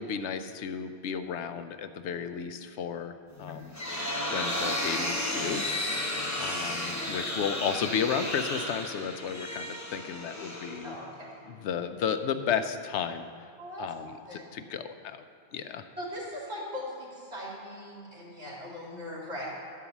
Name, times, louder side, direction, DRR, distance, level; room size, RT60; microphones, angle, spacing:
voice 1, 0.0-3.7 4.3-11.0 11.5-13.3 13.8-15.2 15.5-15.9, left 7 dB, 85° left, 9 dB, 0.9 m, -33 dB
sound 1, 3.4-11.3, left 1 dB, 15° left, 1.0 m, -33 dB
voice 2, 10.8-11.3 13.6-13.8 14.3-14.4 16.0-19.5, left 1 dB, 75° right, -6 dB, 2.8 m, -39 dB
11.0 x 4.7 x 7.1 m, 2.4 s
omnidirectional pair, 1.1 m